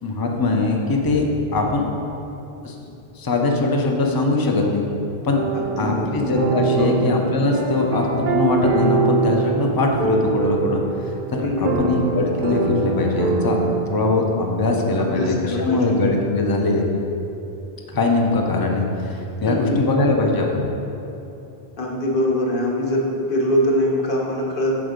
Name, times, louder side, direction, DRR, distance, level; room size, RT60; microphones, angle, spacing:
voice 1, 0.0-1.2 1.5-1.9 2.6-2.7 3.2-4.9 5.2-5.4 5.8-10.8 11.3-13.6 13.9-16.9 17.9-20.6, left 2 dB, 25° left, 1 dB, 0.5 m, -21 dB
sound 1, 5.3-13.9, right 4 dB, 60° right, 0.6 m, -23 dB
voice 2, 5.5-6.1 6.8-6.9 11.4-11.8 15.0-15.9 19.4-19.8 21.8-24.8, left 1 dB, 55° left, -2 dB, 1.1 m, -23 dB
6.0 x 4.5 x 5.1 m, 2.8 s
omnidirectional pair, 1.1 m